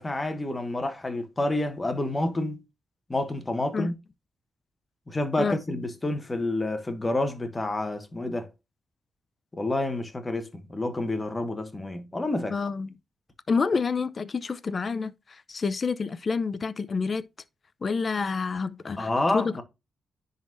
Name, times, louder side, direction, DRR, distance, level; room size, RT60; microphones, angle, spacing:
voice 1, 0.0-2.6 3.1-3.9 5.1-8.5 9.5-12.6 19.0-19.6, left 2 dB, 25° left, 1.4 m, -29 dB
voice 2, 12.5-12.9 13.5-17.2 17.8-19.6, left 5 dB, 45° left, 0.5 m, -28 dB
10.0 x 4.0 x 2.6 m
cardioid pair, 85°, 0 cm